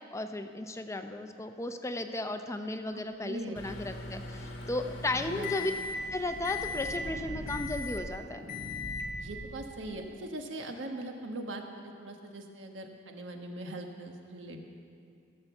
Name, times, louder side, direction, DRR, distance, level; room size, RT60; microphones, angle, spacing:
voice 1, 0.1-5.7 6.1-8.4, left 2 dB, 15° left, 7 dB, 0.5 m, -35 dB
voice 2, 3.2-3.6 5.2-5.5 9.2-14.7, right 1 dB, 85° right, 3 dB, 1.3 m, -41 dB
Microwave oven, 3.6-6.1 6.4-7.0 7.5-8.1 8.5-9.1, left 4 dB, 85° left, 1.4 m, -38 dB
sound 1, 4.0-10.1, equal, 45° right, 1.1 m, -44 dB
16.0 x 6.8 x 7.0 m, 2.4 s
head